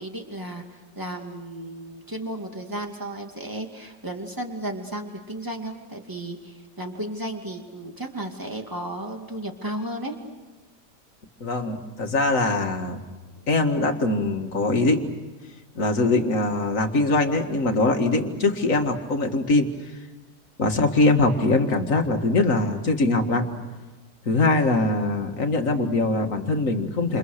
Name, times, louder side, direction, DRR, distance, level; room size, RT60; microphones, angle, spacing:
voice 1, 0.0-10.1 20.7-20.9, right 1 dB, 10° right, 3 dB, 2.5 m, -34 dB
voice 2, 11.4-13.0 13.5-15.0 15.8-19.7 20.6-23.5 24.3-27.2, left 2 dB, 50° left, 5 dB, 2.2 m, -22 dB
28.5 x 28.0 x 6.6 m, 1.2 s
omnidirectional pair, 1.8 m